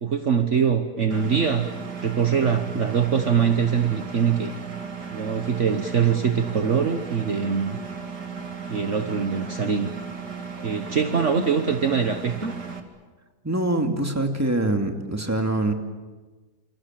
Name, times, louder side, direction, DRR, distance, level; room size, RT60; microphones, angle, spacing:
voice 1, 0.0-1.7 2.0-4.5 5.1-7.8 8.7-9.9 10.6-12.5, right 6 dB, 50° right, 6 dB, 1.5 m, -23 dB
Engine, 1.1-12.8, right 6 dB, 80° right, 2.9 m, -36 dB
voice 2, 13.4-15.7, right 2 dB, 10° right, 4 dB, 2.4 m, -24 dB
28.5 x 27.0 x 7.6 m, 1.3 s
omnidirectional pair, 1.7 m